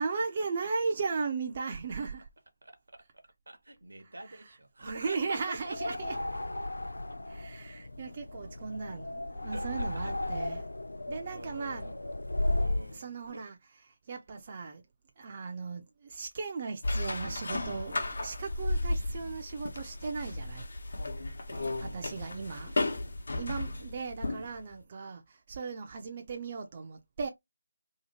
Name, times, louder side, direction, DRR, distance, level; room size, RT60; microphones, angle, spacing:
voice 1, 0.0-2.3 4.3-4.4 4.8-6.1 7.3-10.7 11.1-11.9 12.9-13.6 14.1-14.8 15.2-20.7 21.8-22.8 23.4-27.3, right 4 dB, 35° right, 0.4 m, -37 dB
voice 2, 2.6-6.2 9.5-10.4 11.3-12.0 12.5-13.5 21.5-22.1 23.4-23.7, right 2 dB, 75° right, 0.8 m, -46 dB
sound 1, 5.7-13.0, left 1 dB, 80° left, 0.3 m, -35 dB
sound 2, 16.8-24.6, left 2 dB, 60° left, 0.9 m, -34 dB
2.8 x 2.4 x 2.7 m
figure-of-eight pair, 160°, 0 cm